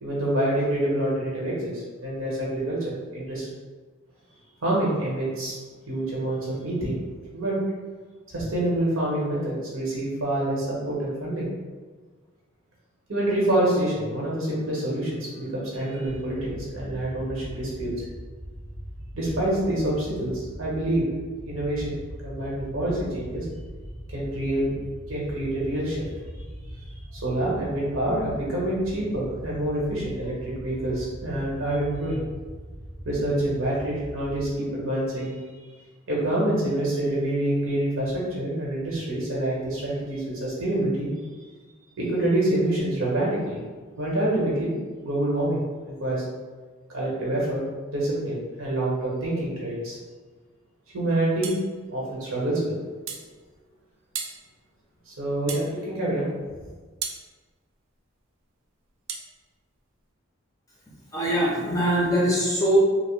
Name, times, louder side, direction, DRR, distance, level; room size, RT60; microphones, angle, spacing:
voice 1, 0.0-3.5 4.6-5.5 5.9-7.0 7.3-7.5 8.3-11.5 13.1-18.0 19.1-21.0 21.4-21.9 22.2-23.5 24.1-24.7 25.1-26.1 27.1-32.2 33.0-35.4 36.1-41.1 42.0-43.6 44.0-44.7 45.0-45.6 46.0-46.2 46.9-47.6 47.9-50.0 50.9-51.5 51.9-52.7 55.1-56.3, right 1 dB, 90° right, -5 dB, 1.1 m, -26 dB
sound 1, 16.1-34.5, equal, 35° right, 0.6 m, -40 dB
sound 2, 51.4-51.7 53.1-53.3 54.1-54.4 55.5-55.7 57.0-57.2 59.1-59.3, right 7 dB, 75° right, 0.3 m, -33 dB
voice 2, 61.1-62.8, equal, 15° left, -5 dB, 0.5 m, -22 dB
2.8 x 2.0 x 3.1 m, 1.4 s
head